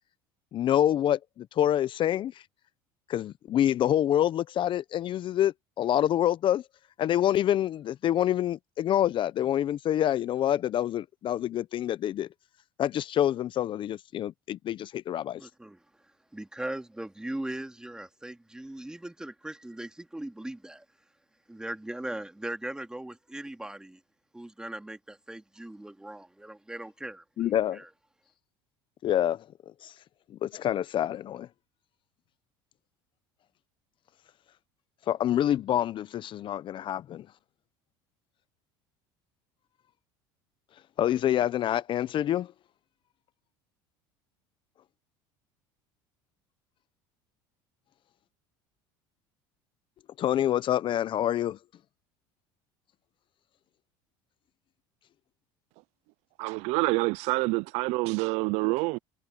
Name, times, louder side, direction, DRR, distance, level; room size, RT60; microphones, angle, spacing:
voice 1, 0.5-2.3 3.1-6.6 7.0-12.3 12.8-15.4 27.4-27.8 29.0-29.4 29.8-29.9 30.4-31.5 35.1-37.3 41.0-42.5 50.2-51.6, left 11 dB, 45° left, 0.8 m, -27 dB
voice 2, 15.4-20.8 21.5-24.0 24.3-27.9, right 1 dB, 5° right, 2.5 m, -39 dB
voice 3, 56.4-59.0, right 25 dB, 65° right, 0.5 m, -27 dB
supercardioid pair, 90°, 12 cm